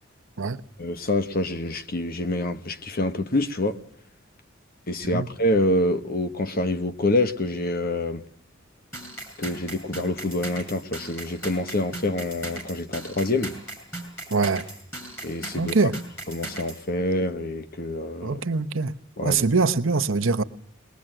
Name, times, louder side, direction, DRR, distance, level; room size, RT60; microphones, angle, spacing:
voice 1, 0.8-3.8 4.9-8.2 9.4-13.5 15.2-15.7 16.3-18.4 19.2-19.4, left 1 dB, 45° left, 1.3 m, -26 dB
sound 1, 8.9-16.8, right 2 dB, 10° left, 6.2 m, -38 dB
voice 2, 14.3-14.6 15.5-16.0 18.2-18.9 19.2-20.4, right 4 dB, 80° right, 1.0 m, -23 dB
21.5 x 20.5 x 9.0 m
head